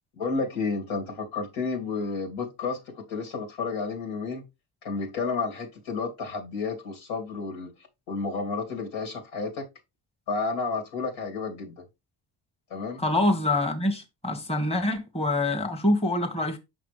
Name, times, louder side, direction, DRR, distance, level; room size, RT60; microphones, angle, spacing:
voice 1, 0.2-4.4 4.8-7.7 8.1-9.6 10.3-11.8 12.7-13.0, left 4 dB, 75° left, 2.5 m, -31 dB
voice 2, 13.0-16.6, left 1 dB, 10° left, 1.4 m, -25 dB
6.0 x 5.9 x 3.3 m
supercardioid pair, 60°, 48 cm